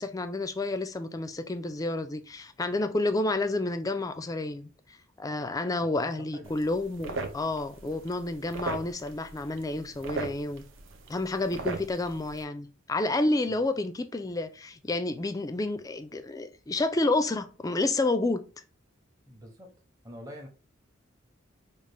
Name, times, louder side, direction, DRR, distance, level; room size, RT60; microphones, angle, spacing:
voice 1, 0.0-4.7 5.2-10.6 11.1-18.4, left 2 dB, 20° left, 0.4 m, -30 dB
voice 2, 5.8-6.6 11.5-11.8 13.5-13.6 19.3-19.7 20.0-20.5, equal, 20° right, 0.8 m, -46 dB
sound 1, 6.4-12.4, right 3 dB, 70° right, 0.6 m, -39 dB
4.9 x 2.4 x 3.4 m
head